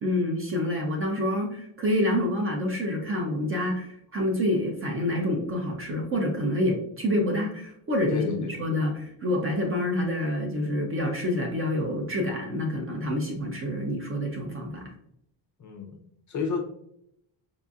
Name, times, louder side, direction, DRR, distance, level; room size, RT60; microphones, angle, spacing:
voice 1, 0.0-14.9, left 1 dB, 30° right, 2 dB, 0.5 m, -27 dB
voice 2, 8.1-8.6 15.6-16.0 16.3-16.7, left 5 dB, 40° left, 2 dB, 0.6 m, -31 dB
4.8 x 2.6 x 2.3 m, 0.75 s
cardioid pair, 165°, 47 cm